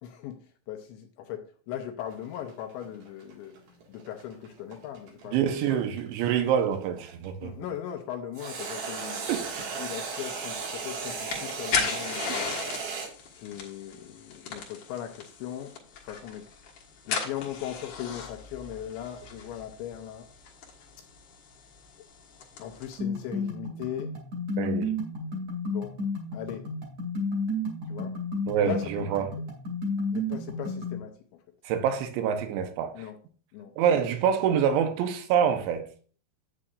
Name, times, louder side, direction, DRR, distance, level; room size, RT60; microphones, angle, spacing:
voice 1, 0.0-3.6 3.9-5.8 7.4-9.3 9.6-12.5 13.3-16.5 17.1-20.3 22.6-24.1 25.7-26.0 26.3-26.7 27.9-28.2 28.6-29.3 30.1-31.4 32.9-33.2 33.5-33.7, left 10 dB, 80° left, 2.9 m, -39 dB
sound 1, 2.1-7.3 8.3-13.1, right 5 dB, 60° right, 3.1 m, -36 dB
voice 2, 5.3-7.5 9.3-9.6 12.3-12.4 24.6-24.9 28.5-29.3 31.6-32.9 33.8-35.9, right 8 dB, 75° right, 2.9 m, -26 dB
sound 2, 10.5-23.0, left 6 dB, 65° left, 2.1 m, -37 dB
sound 3, 23.0-31.0, left 2 dB, 40° right, 2.8 m, -32 dB
9.7 x 8.9 x 2.5 m
omnidirectional pair, 5.9 m